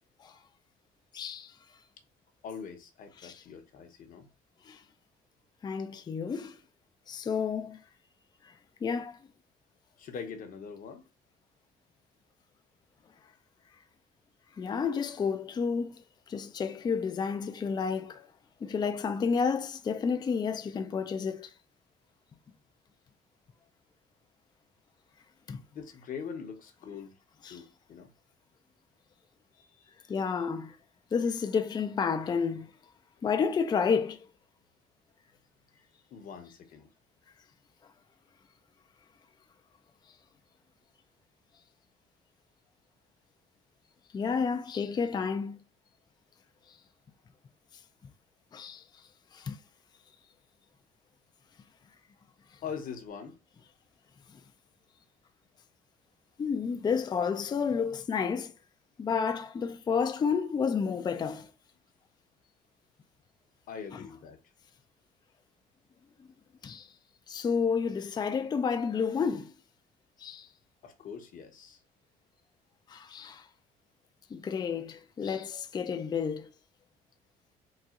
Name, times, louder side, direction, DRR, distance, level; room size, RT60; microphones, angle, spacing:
voice 1, 1.1-1.5 3.2-3.3 4.7-4.8 5.6-6.6 7.1-7.8 8.4-8.5 8.8-9.2 14.6-15.9 16.3-18.3 18.6-21.5 25.5-25.6 27.4-27.6 30.1-30.8 31.1-32.7 33.2-34.3 44.1-45.6 48.5-48.8 49.3-49.6 56.4-58.5 59.0-61.5 63.9-64.0 66.6-66.9 67.3-69.5 70.2-70.5 72.9-73.5 74.3-76.5, left 6 dB, 25° left, 0.4 m, -30 dB
voice 2, 2.4-4.3 10.0-11.0 25.7-27.2 27.5-28.1 29.6-30.1 36.1-36.9 52.6-53.4 63.7-64.4 70.8-71.8, left 6 dB, 55° left, 0.9 m, -42 dB
4.0 x 2.4 x 2.4 m
cardioid pair, 110°, 17 cm